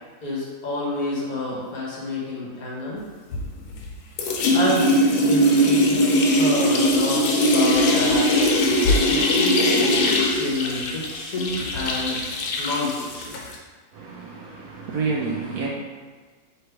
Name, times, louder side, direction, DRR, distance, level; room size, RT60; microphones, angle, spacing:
voice 1, 0.2-3.0 4.5-8.3 8.6-8.7 9.1-10.0 10.4-12.2 12.6-13.3, left 2 dB, 60° left, -4 dB, 1.2 m, -28 dB
sound 1, 3.3-13.6, left 1 dB, 85° left, 1.4 m, -20 dB
voice 2, 13.9-15.7, right 4 dB, 70° right, -2 dB, 0.9 m, -29 dB
3.4 x 3.3 x 4.4 m, 1.4 s
omnidirectional pair, 2.0 m